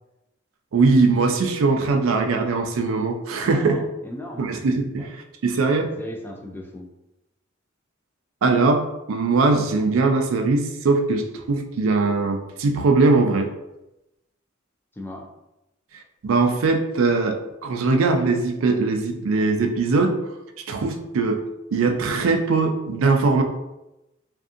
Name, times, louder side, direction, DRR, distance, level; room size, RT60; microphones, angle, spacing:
voice 1, 0.7-3.8 4.4-5.9 8.4-13.5 16.2-20.2 20.7-21.4 21.7-23.4, right 3 dB, 70° right, 5 dB, 0.4 m, -21 dB
voice 2, 3.4-4.5 5.0-5.1 6.0-6.8 15.0-15.3, left 1 dB, 10° left, 0 dB, 0.3 m, -35 dB
2.5 x 2.5 x 2.4 m, 0.92 s
head